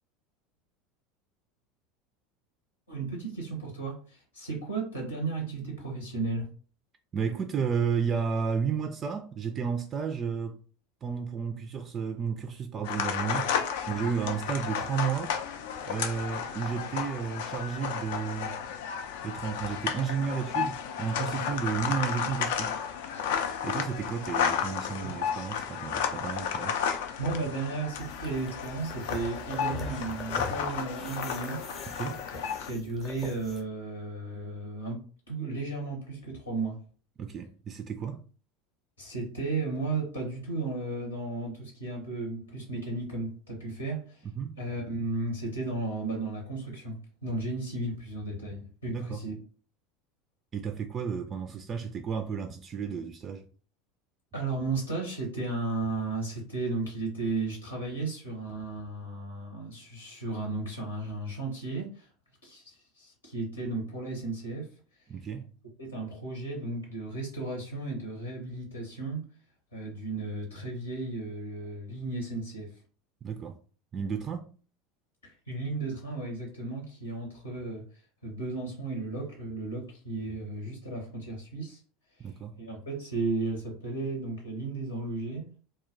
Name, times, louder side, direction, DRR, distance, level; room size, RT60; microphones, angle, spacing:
voice 1, 2.9-6.5 25.0-25.1 27.2-32.0 32.3-36.8 39.0-44.3 44.6-49.3 54.3-62.1 62.4-64.7 65.8-69.3 69.7-72.7 75.2-81.8 82.2-82.3 82.6-85.5, right 3 dB, 80° left, 0.8 m, -34 dB
voice 2, 7.1-10.6 11.0-13.5 13.9-15.4 15.9-18.6 19.2-22.7 23.6-26.8 32.0-32.2 37.2-38.2 44.4-44.5 48.9-49.2 50.5-53.5 65.1-65.5 73.2-73.6 73.9-74.5 82.2-82.5, right 6 dB, 30° right, 0.3 m, -32 dB
sound 1, 12.8-32.7, left 7 dB, 60° left, 0.3 m, -33 dB
sound 2, 27.9-33.6, left 3 dB, 25° left, 0.7 m, -42 dB
2.2 x 2.1 x 3.7 m
figure-of-eight pair, 75°, 0 cm